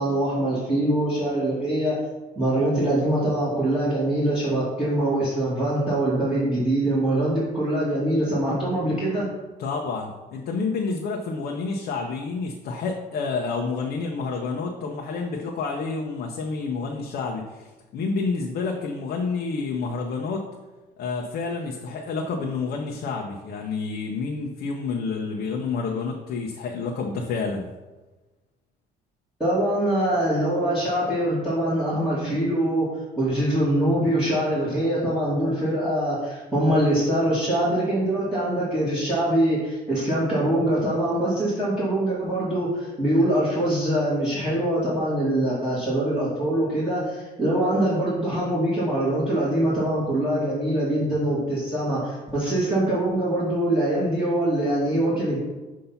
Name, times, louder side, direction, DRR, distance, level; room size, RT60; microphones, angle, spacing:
voice 1, 0.0-2.0 2.4-9.3 29.4-55.4, right 1 dB, 5° right, -11 dB, 2.1 m, -23 dB
voice 2, 9.6-20.4 21.0-27.6, left 4 dB, 65° left, 1 dB, 0.8 m, -29 dB
6.9 x 2.8 x 5.6 m, 1.2 s
cardioid pair, 110°, 17 cm